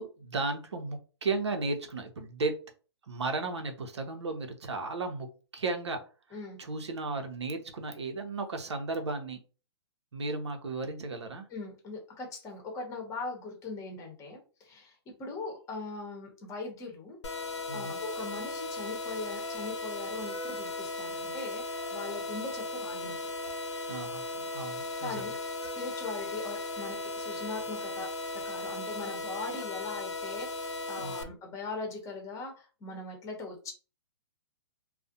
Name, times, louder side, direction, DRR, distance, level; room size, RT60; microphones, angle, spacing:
voice 1, 0.0-2.6 3.1-5.3 5.5-6.0 6.6-9.4 10.1-11.5 17.7-18.0 23.9-25.2 31.0-31.3, right 3 dB, 90° right, 5 dB, 0.6 m, -34 dB
voice 2, 11.5-23.2 25.0-25.3 25.7-28.1 28.3-33.7, left 3 dB, 20° left, 2 dB, 0.8 m, -40 dB
sound 1, 17.2-31.2, left 2 dB, 90° left, 0.5 m, -37 dB
2.4 x 2.1 x 2.7 m, 0.35 s
hypercardioid pair, 130°, 14 cm